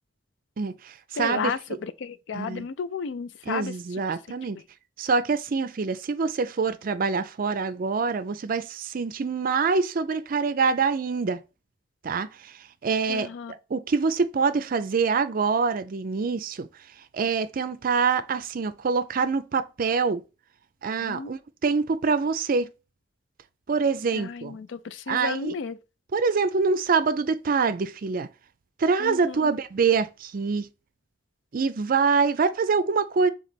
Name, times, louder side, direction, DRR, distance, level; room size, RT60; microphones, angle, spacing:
voice 1, 0.6-1.5 2.3-2.7 3.5-4.6 5.0-11.4 12.0-13.3 13.7-16.7 17.1-20.2 20.8-22.7 23.7-24.6 25.1-25.5 26.1-28.3 28.8-30.7 31.5-33.3, right 5 dB, 50° right, 0.4 m, -25 dB
voice 2, 1.2-3.7 13.1-13.5 21.0-21.3 24.1-25.8 29.0-29.5, left 5 dB, 75° left, 0.4 m, -33 dB
3.5 x 3.2 x 4.0 m
head